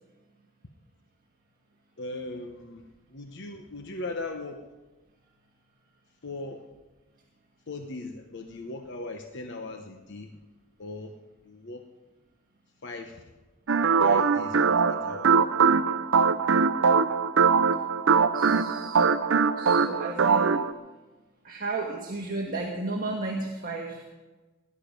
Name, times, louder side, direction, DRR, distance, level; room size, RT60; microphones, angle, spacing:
voice 1, 2.0-4.6 6.2-6.6 7.7-10.4 10.8-11.1 11.4-11.9 12.8-13.2 14.0-15.6, left 2 dB, 55° left, 4 dB, 1.1 m, -39 dB
sound 1, 13.7-20.7, right 5 dB, 65° right, 0.6 m, -22 dB
voice 2, 18.3-19.1 19.6-20.6 21.4-24.0, right 3 dB, 40° right, -1 dB, 1.7 m, -33 dB
18.5 x 11.5 x 5.3 m, 1.2 s
head